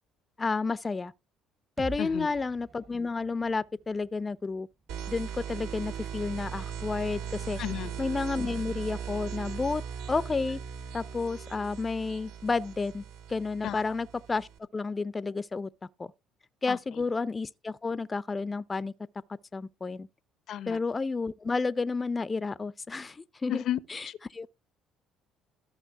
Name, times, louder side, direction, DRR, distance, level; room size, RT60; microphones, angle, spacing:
voice 1, 0.4-1.1 1.8-4.7 5.1-7.6 8.0-9.8 10.1-10.6 10.9-13.0 13.3-15.7 16.0-16.1 16.6-18.9 19.5-20.1 20.7-23.6 23.9-24.5, left 4 dB, 25° left, 0.6 m, -31 dB
sound 1, 1.8-5.6, right 3 dB, 35° right, 0.8 m, -47 dB
voice 2, 2.0-2.3 7.6-7.9 13.6-13.9 16.7-17.1 20.5-20.8 23.5-23.8 24.1-24.2, left 11 dB, 60° left, 0.8 m, -33 dB
sound 2, 4.9-14.6, right 8 dB, 75° right, 2.2 m, -39 dB
13.5 x 6.1 x 4.7 m
hypercardioid pair, 65°, 0 cm